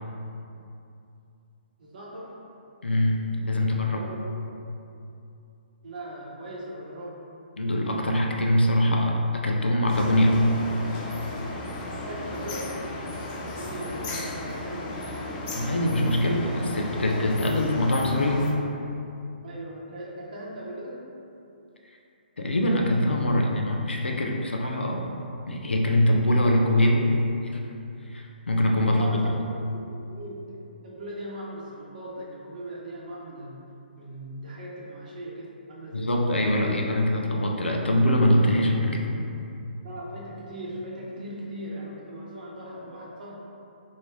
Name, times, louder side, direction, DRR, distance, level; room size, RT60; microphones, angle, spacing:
voice 1, 1.8-2.3 3.9-4.2 4.7-4.8 5.8-7.2 12.1-12.7 13.3-15.4 19.4-21.0 28.9-29.3 30.1-30.6 30.8-33.6 34.0-36.3 39.8-43.4, right 1 dB, 55° right, -4 dB, 0.8 m, -39 dB
voice 2, 2.8-4.1 7.6-10.5 15.5-18.4 22.4-25.1 25.5-27.2 28.1-29.2 35.9-39.1, left 1 dB, 85° left, 1 dB, 0.5 m, -23 dB
sound 1, 9.9-18.5, left 2 dB, 25° left, 0.4 m, -35 dB
3.2 x 2.7 x 3.1 m, 2.7 s
figure-of-eight pair, 135°, 6 cm